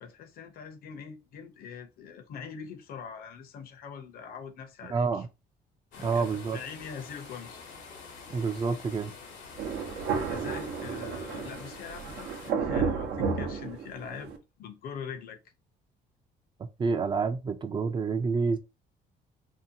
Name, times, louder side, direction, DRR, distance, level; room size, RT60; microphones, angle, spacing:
voice 1, 0.0-5.3 6.0-7.6 10.3-15.4, left 6 dB, 60° left, 0.7 m, -43 dB
voice 2, 4.9-5.3 6.0-6.6 8.3-9.1 16.8-18.6, right 5 dB, 25° right, 0.4 m, -28 dB
sound 1, 5.9-12.5, left 4 dB, 85° left, 1.0 m, -47 dB
Thunder, 9.6-14.4, right 5 dB, 75° right, 0.7 m, -32 dB
2.7 x 2.2 x 2.7 m
cardioid pair, 110°, 17 cm